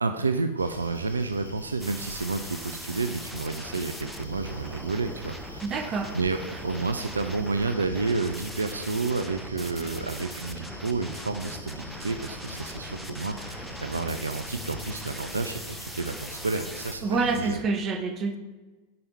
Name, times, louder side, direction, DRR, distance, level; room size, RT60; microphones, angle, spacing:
voice 1, 0.0-5.6 6.1-17.0 17.4-17.6, right 3 dB, 75° right, 8 dB, 0.4 m, -30 dB
sound 1, 0.6-17.6, left 1 dB, 85° left, 1.0 m, -44 dB
sound 2, 1.8-17.0, equal, ahead, 0.7 m, -41 dB
voice 2, 5.6-6.1 17.0-18.4, right 4 dB, 30° right, 8 dB, 0.9 m, -27 dB
9.6 x 5.2 x 4.2 m, 1.3 s
figure-of-eight pair, 90°, 0 cm